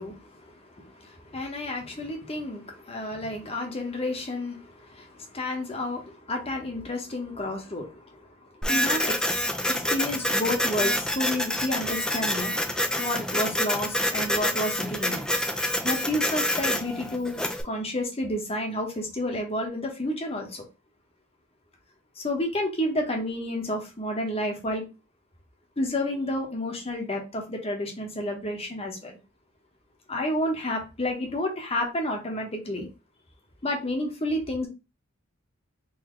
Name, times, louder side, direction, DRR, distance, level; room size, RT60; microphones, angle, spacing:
voice 1, 0.0-12.5 13.0-15.2 15.8-17.4 17.6-20.7 22.2-24.8 25.8-29.2 30.1-32.9 33.6-34.7, left 1 dB, 30° left, 2 dB, 1.0 m, -30 dB
Printer, 8.6-17.6, left 1 dB, 5° left, 0.5 m, -27 dB
3.9 x 2.8 x 3.1 m, 0.28 s
head